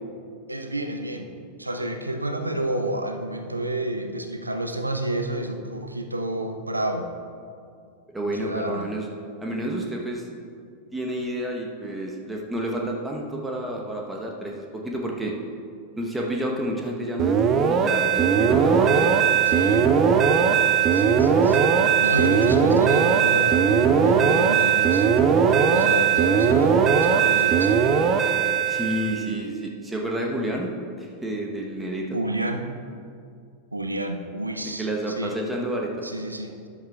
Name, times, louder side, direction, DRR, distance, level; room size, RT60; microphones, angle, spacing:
voice 1, 0.5-1.3 1.6-7.1 8.3-8.9 19.5-19.9 20.9-21.6 22.0-25.1 25.7-28.0 32.1-32.7 33.7-35.4 36.0-36.7, right 1 dB, 85° right, 7 dB, 0.7 m, -30 dB
voice 2, 8.1-9.1 9.4-10.3 10.9-15.3 16.0-19.1 22.5-22.6 28.7-30.7 31.0-32.0 34.8-35.9, right 1 dB, 10° right, 0 dB, 1.1 m, -29 dB
sound 1, 17.2-29.3, right 7 dB, 30° right, 0.6 m, -19 dB
13.5 x 10.5 x 2.4 m, 2.4 s
figure-of-eight pair, 90°, 0 cm